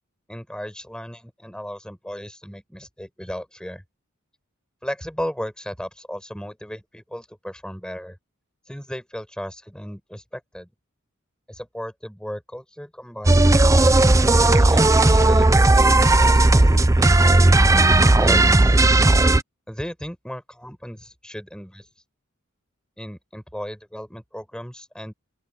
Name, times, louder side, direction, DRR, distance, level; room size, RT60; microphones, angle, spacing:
voice 1, 0.3-3.8 4.8-8.2 8.7-10.7 11.5-13.8 14.4-17.4 18.0-18.8 19.7-21.9 23.0-25.1, equal, 5° left, 6.1 m, -35 dB
sound 1, 13.3-19.4, right 2 dB, 15° right, 0.5 m, -15 dB
open air
head